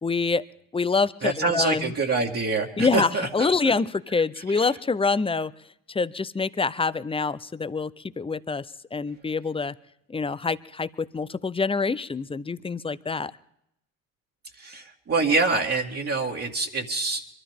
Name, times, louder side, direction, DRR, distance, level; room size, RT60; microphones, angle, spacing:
voice 1, 0.0-0.4 0.7-1.9 2.8-5.5 5.9-8.7 8.9-9.7 10.1-13.3, left 4 dB, 15° left, 16 dB, 0.7 m, -26 dB
voice 2, 1.2-3.3 3.6-3.7 4.5-4.7 14.6-17.3, right 3 dB, 35° right, -2 dB, 2.1 m, -26 dB
25.0 x 13.0 x 3.7 m, 0.76 s
hypercardioid pair, 55°, 40 cm